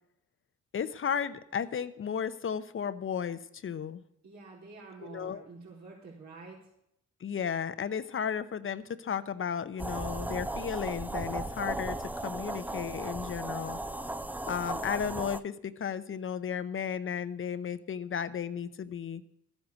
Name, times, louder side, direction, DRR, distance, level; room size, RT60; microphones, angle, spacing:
voice 1, 0.7-4.0 5.0-5.4 7.2-13.8 14.5-19.2, left 7 dB, 45° left, 12 dB, 0.8 m, -34 dB
voice 2, 4.2-6.6, right 4 dB, 70° right, -6 dB, 4.1 m, -48 dB
sound 1, 9.8-15.4, right 2 dB, 5° right, 0.5 m, -36 dB
13.5 x 8.1 x 8.3 m, 0.77 s
cardioid pair, 90°, 30 cm